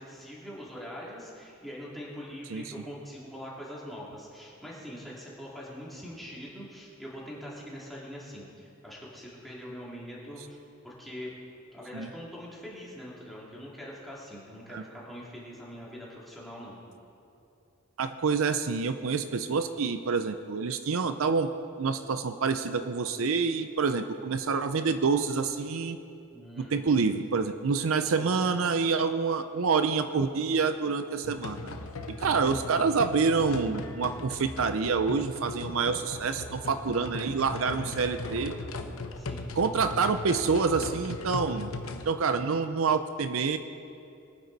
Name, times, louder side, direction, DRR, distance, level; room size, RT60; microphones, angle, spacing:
voice 1, 0.0-10.6 10.8-11.3 11.7-16.8 26.3-26.8 28.2-28.4 32.2-32.6 39.1-39.5, equal, ahead, -7 dB, 2.8 m, -43 dB
voice 2, 18.0-21.5 21.8-26.0 26.6-31.6 32.1-38.5 39.6-41.7 42.1-43.6, right 5 dB, 70° right, 9 dB, 0.5 m, -27 dB
sound 1, 31.2-42.1, left 3 dB, 80° left, 0.9 m, -38 dB
22.0 x 9.6 x 4.1 m, 2.7 s
head